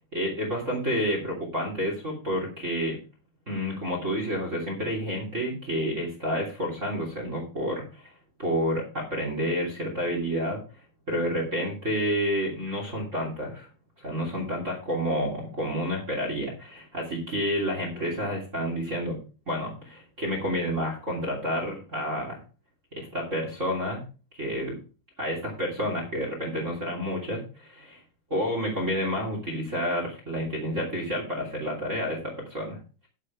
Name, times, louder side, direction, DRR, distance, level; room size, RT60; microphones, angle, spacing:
voice 1, 0.1-3.0 3.5-8.1 8.4-10.6 11.1-13.7 14.0-19.2 19.5-22.4 22.9-24.0 24.3-24.8 25.2-28.0 28.3-32.8, equal, 20° right, 0 dB, 2.1 m, -29 dB
11.0 x 6.4 x 4.7 m, 0.34 s
omnidirectional pair, 5.9 m